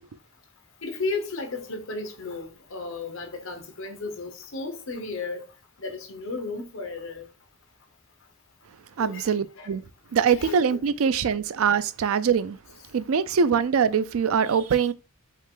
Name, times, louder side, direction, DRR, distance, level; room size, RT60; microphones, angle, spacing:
voice 1, 0.8-5.5 5.8-7.3 9.0-9.7 10.4-10.6, left 3 dB, 65° left, 1.0 m, -34 dB
voice 2, 9.0-9.8 10.1-12.6 12.9-14.9, right 6 dB, 75° right, 0.4 m, -23 dB
5.5 x 2.4 x 3.7 m
head